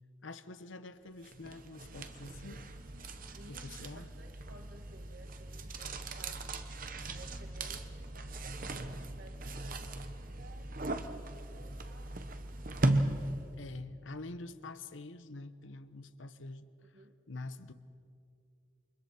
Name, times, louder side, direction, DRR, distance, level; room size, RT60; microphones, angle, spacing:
voice 1, 0.2-2.6 3.5-4.1 13.6-17.7, left 2 dB, 80° left, 0.9 m, -46 dB
sound 1, 1.2-13.6, right 2 dB, 45° right, 1.0 m, -38 dB
voice 2, 3.4-6.4 7.1-10.7 11.5-12.4 16.8-17.2, right 2 dB, 65° right, 2.2 m, -57 dB
28.5 x 25.0 x 4.3 m
head